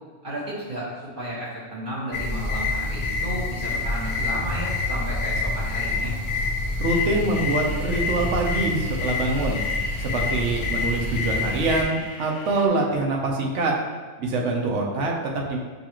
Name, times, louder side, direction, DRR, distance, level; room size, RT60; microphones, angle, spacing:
voice 1, 0.2-0.9 1.1-6.1, right 1 dB, 45° right, -9 dB, 1.4 m, -33 dB
sound 1, 2.1-11.8, left 3 dB, 55° left, 0.6 m, -27 dB
voice 2, 6.8-9.6 10.0-13.8 14.2-15.6, right 2 dB, 75° right, 0 dB, 1.0 m, -25 dB
sound 2, 6.9-12.7, left 4 dB, 85° left, 1.0 m, -43 dB
6.6 x 2.4 x 2.9 m, 1.4 s
omnidirectional pair, 1.3 m